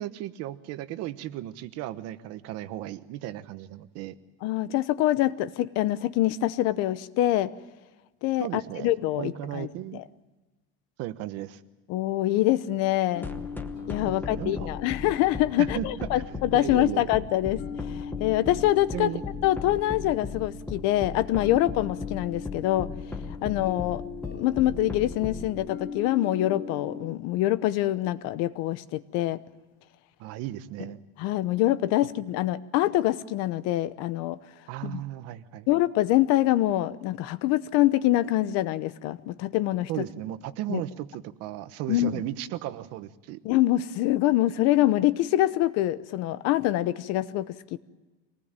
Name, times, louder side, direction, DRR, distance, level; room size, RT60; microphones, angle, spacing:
voice 1, 0.0-4.1 8.4-10.0 11.0-11.6 14.0-14.7 15.6-15.9 16.5-17.1 18.9-19.2 30.2-31.0 34.7-35.7 39.9-43.4, right 14 dB, 55° right, 13 dB, 1.1 m, -35 dB
voice 2, 4.4-7.5 8.2-10.0 11.9-13.3 13.9-17.6 18.0-19.1 19.4-22.9 23.4-24.0 24.3-29.4 31.2-34.4 34.8-35.0 35.7-40.1 40.7-40.8 41.9-42.2 43.4-47.8, left 15 dB, 60° left, 15 dB, 1.0 m, -25 dB
sound 1, 13.1-27.0, left 6 dB, 35° left, 3.2 m, -40 dB
sound 2, 13.2-25.5, left 4 dB, 5° left, 1.1 m, -36 dB
25.0 x 19.0 x 9.0 m, 1.2 s
cardioid pair, 175°, 29 cm